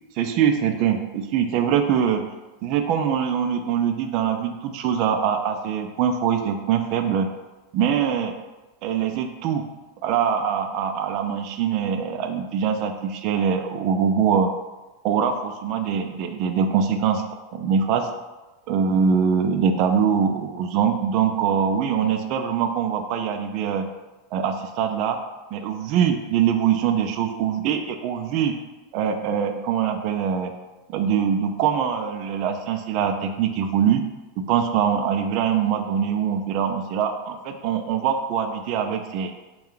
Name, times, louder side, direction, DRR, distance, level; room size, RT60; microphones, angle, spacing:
voice 1, 0.2-2.2 2.6-7.3 7.7-8.3 8.8-9.6 10.0-14.5 15.0-17.2 17.5-18.1 18.7-23.9 24.3-25.2 25.5-28.5 28.9-30.5 30.9-34.0 34.4-39.3, right 7 dB, 50° right, 6 dB, 0.4 m, -23 dB
4.1 x 2.3 x 3.8 m, 1.1 s
supercardioid pair, 130°, 0 cm